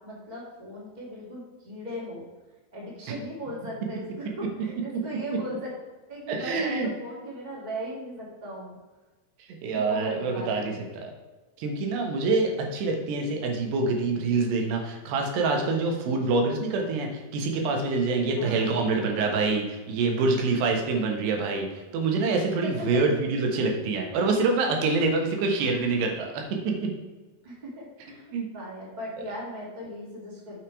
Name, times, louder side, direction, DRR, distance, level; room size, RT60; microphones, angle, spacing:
voice 1, 0.0-2.2 2.7-5.7 6.1-8.8 9.7-10.9 18.3-18.8 22.6-23.0 27.4-30.6, equal, 15° right, -4 dB, 2.1 m, -38 dB
voice 2, 6.3-6.9 9.6-11.1 11.6-26.9 28.3-28.5, right 3 dB, 85° right, 2 dB, 3.5 m, -26 dB
7.9 x 6.1 x 4.8 m, 1.2 s
omnidirectional pair, 4.7 m